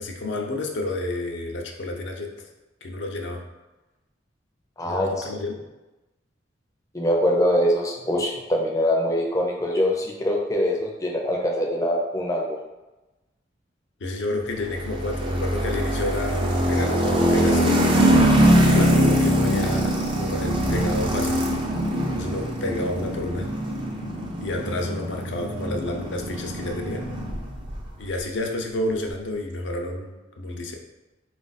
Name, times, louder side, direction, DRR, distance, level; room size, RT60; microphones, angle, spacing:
voice 1, 0.0-2.3 2.8-3.4 4.8-5.5 14.0-17.9 18.7-21.4 22.1-23.5 24.4-27.0 28.0-30.7, left 2 dB, 75° left, 1 dB, 0.6 m, -30 dB
voice 2, 4.8-5.3 6.9-12.6, equal, 20° left, -1 dB, 0.5 m, -23 dB
sound 1, 14.7-27.8, equal, 30° right, 0.5 m, -22 dB
3.9 x 2.5 x 4.0 m, 1.1 s
head